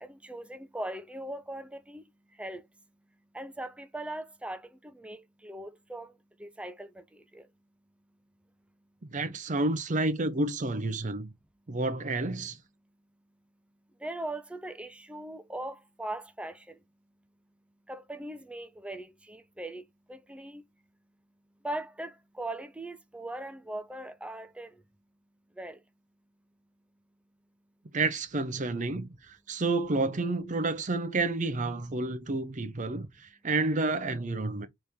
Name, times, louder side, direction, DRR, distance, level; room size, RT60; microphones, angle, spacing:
voice 1, 0.0-2.0 2.4-2.6 3.3-4.6 4.9-6.1 6.4-7.0 7.3-7.4 14.0-16.5 17.9-19.8 20.1-20.6 21.6-24.7 25.6-25.8, right 1 dB, 5° right, 0.4 m, -39 dB
voice 2, 9.0-11.3 11.7-12.6 27.9-34.7, right 2 dB, 40° right, 0.7 m, -30 dB
3.4 x 3.4 x 4.3 m
head